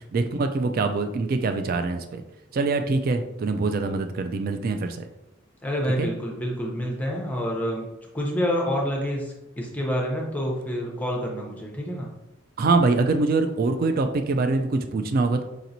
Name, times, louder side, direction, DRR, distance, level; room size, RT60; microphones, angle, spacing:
voice 1, 0.0-2.2 2.5-5.0 6.0-6.1 12.6-15.4, right 3 dB, 45° right, 7 dB, 0.3 m, -24 dB
voice 2, 5.6-7.9 8.1-12.1, equal, 10° left, -2 dB, 0.6 m, -28 dB
4.9 x 2.9 x 2.6 m, 0.94 s
head